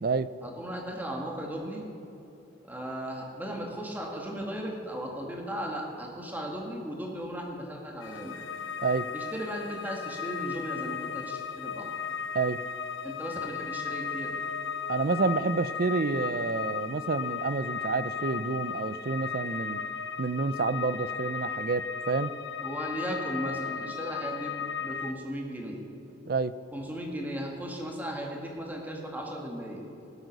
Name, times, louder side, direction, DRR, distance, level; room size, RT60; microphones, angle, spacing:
voice 1, 0.4-1.8 2.6-8.4 9.1-11.9 13.0-14.4 22.6-25.8 26.7-29.8, equal, 10° right, 0 dB, 1.9 m, -36 dB
sound 1, 8.0-25.1, left 6 dB, 85° left, 0.7 m, -35 dB
voice 2, 14.9-19.8 20.2-22.3 26.3-26.5, right 4 dB, 50° right, 15 dB, 0.4 m, -29 dB
18.0 x 7.9 x 6.6 m, 2.9 s
head